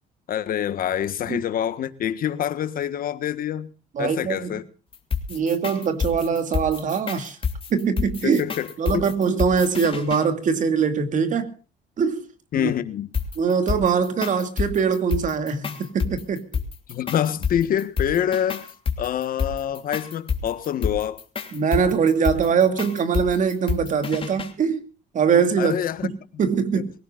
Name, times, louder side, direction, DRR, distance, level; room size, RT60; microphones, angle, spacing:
voice 1, 0.3-3.7 4.0-4.6 8.2-9.1 12.5-13.1 16.9-18.7 19.0-21.2 25.6-26.1 26.7-26.8, left 10 dB, 55° left, 1.5 m, -26 dB
voice 2, 3.9-4.5 5.3-7.4 7.7-8.4 8.8-11.5 12.0-12.2 12.5-12.7 13.4-16.4 21.5-24.8 25.1-26.1 26.4-26.9, right 6 dB, 50° right, 2.5 m, -22 dB
sound 1, 4.9-10.2 13.1-24.5, left 6 dB, 30° left, 2.9 m, -29 dB
24.0 x 17.0 x 2.5 m
cardioid pair, 110°, 17 cm